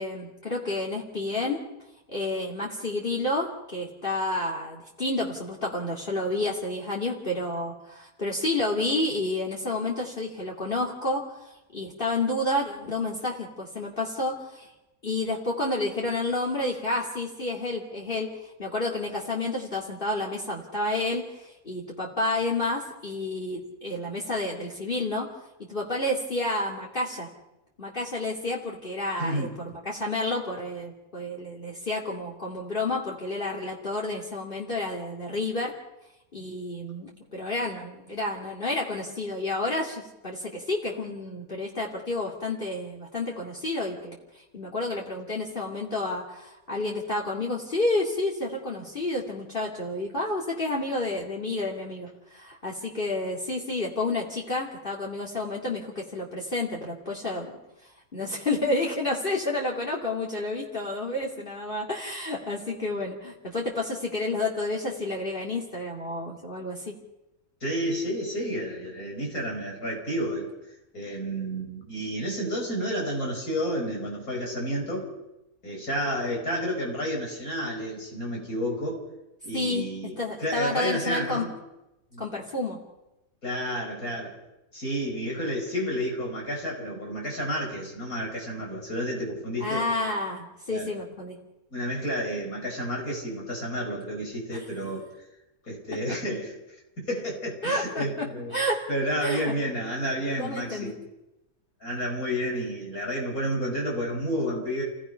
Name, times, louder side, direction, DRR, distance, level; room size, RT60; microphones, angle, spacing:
voice 1, 0.0-1.6 2.1-14.7 15.0-25.3 25.7-27.3 27.8-35.7 36.3-57.6 58.1-66.9 79.5-79.8 80.2-81.5 82.2-82.8 89.6-91.4 94.5-94.6 97.6-98.9 99.2-99.5 100.4-100.9, left 2 dB, 35° left, -1 dB, 2.7 m, -30 dB
voice 2, 29.2-29.5 67.6-70.5 70.9-75.1 75.6-79.0 79.4-80.1 80.4-81.5 82.1-82.3 83.4-84.4 84.7-89.8 90.7-90.9 91.7-95.1 95.6-98.6 98.9-100.9 101.8-104.8, equal, 90° left, 0 dB, 6.6 m, -30 dB
29.0 x 17.5 x 5.7 m, 0.93 s
omnidirectional pair, 1.5 m